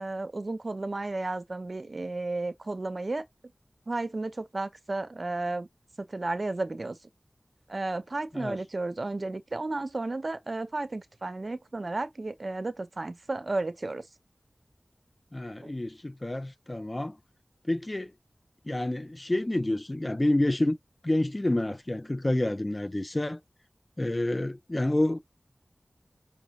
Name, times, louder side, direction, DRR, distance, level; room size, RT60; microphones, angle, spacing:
voice 1, 0.0-3.2 3.9-5.7 6.0-7.0 7.7-14.1 15.6-15.7, right 2 dB, 55° right, 0.6 m, -33 dB
voice 2, 15.3-17.2 17.6-18.1 18.6-20.8 21.0-23.4 24.0-25.2, left 1 dB, 30° left, 0.4 m, -28 dB
5.6 x 2.4 x 2.9 m
wide cardioid pair, 70°, 0 cm